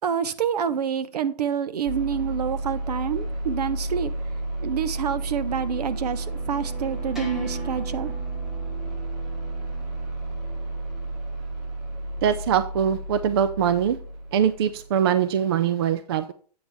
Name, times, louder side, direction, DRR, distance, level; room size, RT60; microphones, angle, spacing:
voice 1, 0.0-4.1 4.6-8.1, right 7 dB, 70° right, 14 dB, 0.8 m, -27 dB
sound 1, 1.8-14.9, right 2 dB, 85° right, 4.2 m, -32 dB
sound 2, 4.9-11.1, right 1 dB, ahead, 0.8 m, -42 dB
voice 2, 12.2-14.0 14.3-16.3, right 8 dB, 40° right, 13 dB, 0.4 m, -22 dB
8.5 x 6.1 x 3.4 m, 0.43 s
hypercardioid pair, 160°, 21 cm